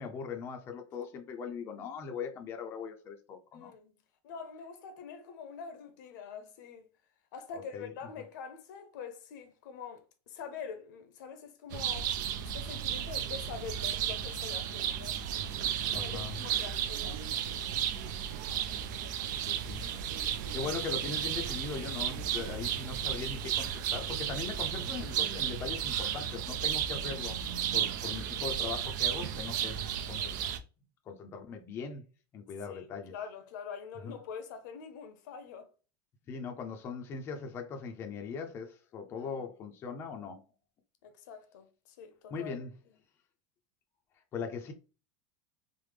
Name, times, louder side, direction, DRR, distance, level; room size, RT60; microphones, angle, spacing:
voice 1, 0.0-3.7 7.5-7.9 15.9-16.4 19.5-19.9 20.5-27.4 27.7-29.8 30.1-30.5 31.1-32.1 32.3-33.1 34.0-34.2 36.3-40.4 42.3-42.7 44.3-44.7, left 5 dB, 25° left, 0.4 m, -40 dB
voice 2, 3.5-3.9 4.2-6.9 7.3-15.2 15.9-17.2 27.8-28.1 32.7-35.7 39.1-39.5 41.0-42.6, left 6 dB, 80° left, 0.7 m, -45 dB
sound 1, 11.7-30.6, right 9 dB, 80° right, 0.4 m, -34 dB
3.2 x 2.0 x 3.3 m
supercardioid pair, 160°, 10 cm